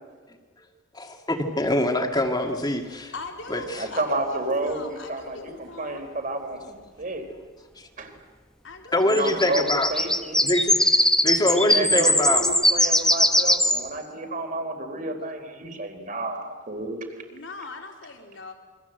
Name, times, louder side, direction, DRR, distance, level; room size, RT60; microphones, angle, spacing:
voice 1, 0.9-3.1 3.5-3.8 7.8-7.9 8.9-9.9 10.4-10.9 11.2-12.4, left 1 dB, 20° left, 3 dB, 2.2 m, -24 dB
voice 2, 3.1-6.1 8.6-9.7 17.3-18.5, left 3 dB, 65° left, 2 dB, 3.8 m, -40 dB
voice 3, 3.7-7.2 8.0-8.1 8.9-10.4 11.4-17.1, right 2 dB, 40° right, 6 dB, 4.1 m, -31 dB
sound 1, 9.1-13.8, left 1 dB, 5° left, 1.2 m, -21 dB
28.5 x 24.0 x 8.0 m, 1.5 s
head